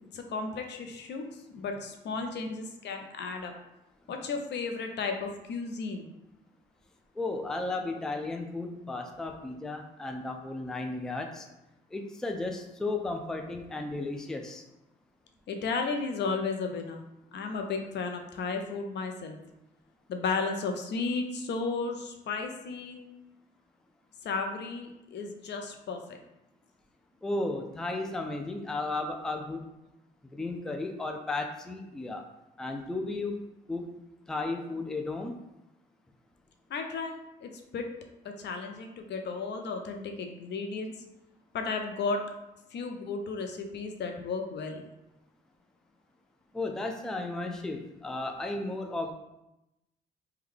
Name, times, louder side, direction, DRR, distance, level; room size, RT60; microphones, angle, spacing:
voice 1, 0.1-3.5 4.1-6.1 15.5-17.0 17.3-19.4 20.1-23.0 24.2-26.2 36.7-37.1 37.4-37.8 38.2-40.9 41.5-42.2 42.7-44.8, left 4 dB, 60° left, 4 dB, 0.5 m, -34 dB
voice 2, 7.2-11.5 11.9-14.6 27.2-29.6 30.3-32.3 32.6-35.4 46.5-49.1, left 2 dB, 5° left, 3 dB, 0.3 m, -34 dB
3.6 x 2.2 x 3.2 m, 0.91 s
cardioid pair, 90°, 20 cm